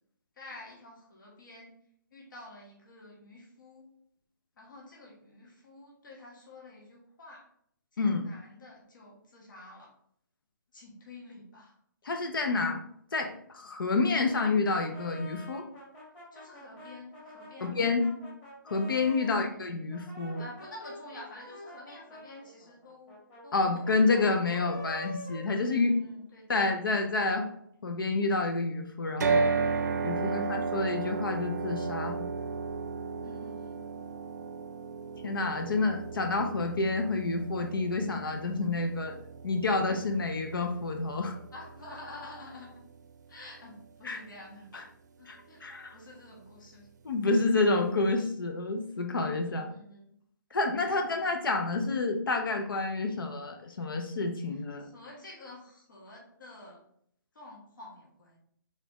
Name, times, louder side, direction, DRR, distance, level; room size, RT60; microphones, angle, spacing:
voice 1, 0.4-1.7 2.1-3.9 4.6-7.5 7.9-9.9 10.7-11.8 16.3-17.8 19.2-19.7 20.4-24.1 25.7-26.7 30.2-30.6 33.2-33.8 41.5-42.8 43.3-44.9 45.2-45.6 45.9-46.9 49.5-50.1 54.5-56.8 57.3-58.4, left 2 dB, 65° left, -3 dB, 1.5 m, -49 dB
voice 2, 8.0-8.3 12.0-12.8 13.1-15.6 17.6-18.1 18.7-20.4 23.5-25.9 26.5-27.5 27.8-29.5 30.0-32.3 35.2-39.2 39.4-41.4 44.0-44.2 44.7-44.8 45.3-46.0 47.0-49.7 50.5-54.9, left 3 dB, 85° left, 4 dB, 0.7 m, -29 dB
Brass instrument, 14.2-19.4 19.9-26.2, equal, 20° left, 1.7 m, -47 dB
sound 1, 29.2-43.3, right 4 dB, 55° right, 0.5 m, -34 dB
4.1 x 4.0 x 3.0 m, 0.69 s
hypercardioid pair, 170°, 11 cm